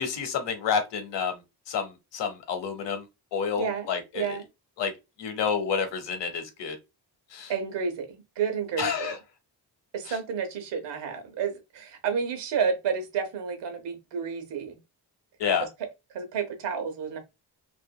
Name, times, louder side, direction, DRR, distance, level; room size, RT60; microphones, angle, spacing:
voice 1, 0.0-1.4 1.7-3.0 3.3-4.4 4.8-4.9 5.2-6.8 7.3-7.5 8.8-9.2 10.1-10.2 15.4-15.7, left 6 dB, 90° left, 0.8 m, -29 dB
voice 2, 3.6-3.9 4.1-4.4 7.5-9.1 9.9-14.8 15.6-15.7 16.1-17.2, right 6 dB, 90° right, 0.9 m, -30 dB
2.8 x 2.5 x 2.2 m
cardioid pair, 90°, 42 cm